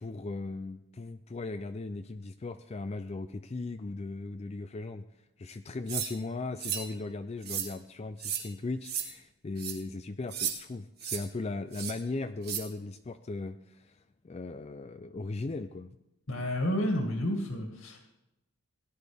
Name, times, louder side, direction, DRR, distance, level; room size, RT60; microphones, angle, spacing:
voice 1, 0.0-5.0 5.4-15.9, left 3 dB, 30° left, 9 dB, 0.4 m, -38 dB
sound 1, 5.9-6.1 6.6-6.9 7.4-7.7 8.2-8.4 8.8-9.1 9.6-9.7 10.3-10.5 11.0-11.2 11.7-11.9 12.4-12.6, right 8 dB, 45° right, 1.6 m, -33 dB
voice 2, 16.3-18.0, left 1 dB, 70° left, 2 dB, 2.1 m, -30 dB
17.5 x 11.0 x 3.5 m, 0.90 s
head